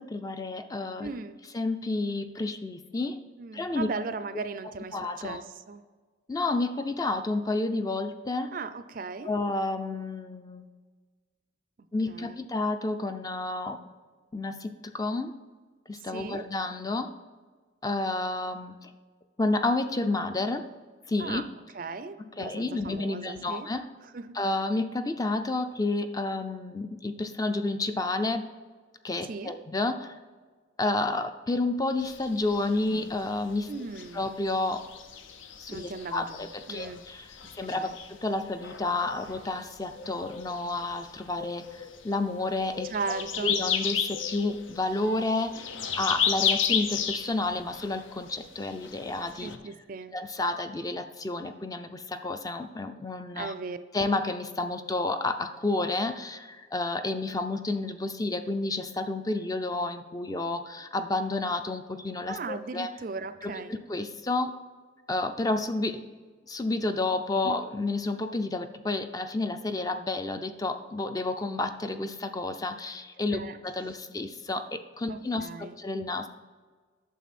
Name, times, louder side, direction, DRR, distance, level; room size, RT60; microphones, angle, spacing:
voice 1, 0.0-1.1 1.5-3.2 3.5-3.9 4.9-5.4 6.3-8.5 9.3-10.7 11.9-13.8 14.3-15.3 15.9-17.1 17.8-18.9 19.4-20.6 21.1-21.4 22.2-23.9 24.3-28.5 29.0-30.2 30.8-33.7 34.1-34.8 35.6-42.9 43.4-45.7 46.0-49.5 50.1-53.5 53.9-62.9 63.4-64.5 65.1-66.0 66.5-76.3, left 2 dB, 20° left, 8 dB, 0.4 m, -30 dB
voice 2, 1.0-1.4 3.4-5.8 8.5-9.3 12.1-12.4 16.1-16.4 21.2-21.4 21.7-23.7 24.1-24.4 29.3-29.6 33.7-34.2 35.7-37.0 37.7-38.0 42.9-43.5 49.4-50.2 53.4-53.8 62.3-63.8 67.4-67.6 73.3-73.6 75.1-75.8, right 4 dB, 45° right, 12 dB, 0.4 m, -37 dB
sound 1, 32.0-49.6, left 7 dB, 80° left, 0.7 m, -34 dB
9.2 x 6.9 x 4.2 m, 1.4 s
head